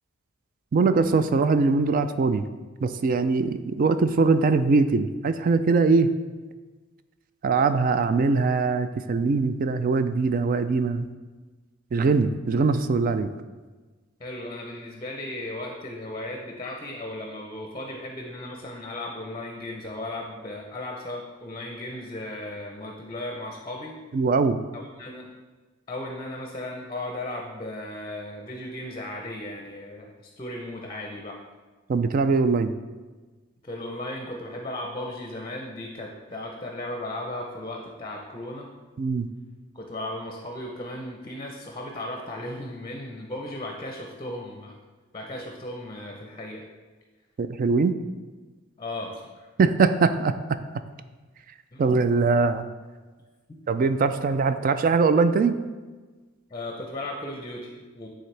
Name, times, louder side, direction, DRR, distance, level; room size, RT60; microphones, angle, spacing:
voice 1, 0.7-2.5 2.8-6.1 7.4-11.1 11.9-13.3 24.1-24.6 31.9-32.7 39.0-39.3 47.4-47.9 49.6-50.3 51.8-52.6 53.7-55.5, right 4 dB, 45° right, 11 dB, 0.3 m, -22 dB
voice 2, 14.2-24.0 24.7-25.3 25.9-31.4 33.6-38.7 39.7-44.8 45.1-46.7 48.8-49.5 51.7-51.8 56.5-58.1, left 1 dB, 25° left, 2 dB, 0.6 m, -36 dB
9.3 x 3.8 x 3.3 m, 1.3 s
head